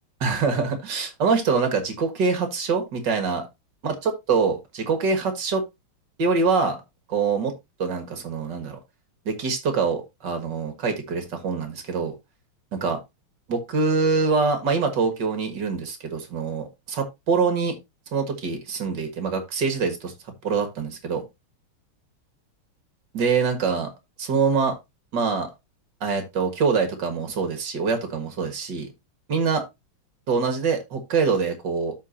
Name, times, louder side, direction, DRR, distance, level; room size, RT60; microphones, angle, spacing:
voice 1, 0.2-3.5 3.8-5.6 6.2-6.8 7.1-7.5 7.8-8.8 9.3-12.2 12.7-13.0 13.5-17.8 18.1-20.1 20.4-21.3 23.1-23.9 24.2-24.7 25.1-25.5 26.0-28.9 29.3-29.6 30.3-31.9, right 5 dB, 55° right, 2.2 m, -24 dB
13.5 x 4.6 x 2.7 m
omnidirectional pair, 2.3 m